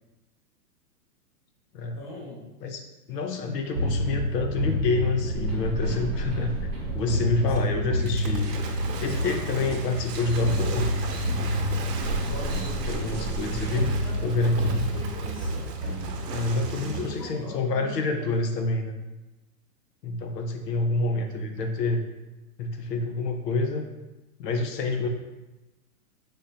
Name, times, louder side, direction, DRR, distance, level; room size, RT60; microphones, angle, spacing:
voice 1, 1.9-2.4 7.5-7.9 12.2-13.2 13.6-15.8 16.8-18.3, left 1 dB, 30° left, -3 dB, 0.8 m, -42 dB
voice 2, 2.6-6.5 6.9-8.6 9.0-10.9 12.9-13.9 14.2-14.9 16.3-19.0 20.0-22.0 22.6-23.9 24.4-25.1, left 3 dB, 80° left, 5 dB, 0.7 m, -27 dB
sound 1, 3.7-17.0, equal, ahead, 0.6 m, -29 dB
sound 2, 7.1-7.6 8.0-9.3 9.7-14.0, right 4 dB, 40° right, 0.7 m, -47 dB
Waves surf / Splash splatter, 8.1-17.3, right 5 dB, 85° right, 0.9 m, -39 dB
5.2 x 3.6 x 2.7 m, 1.1 s
supercardioid pair, 175°, 48 cm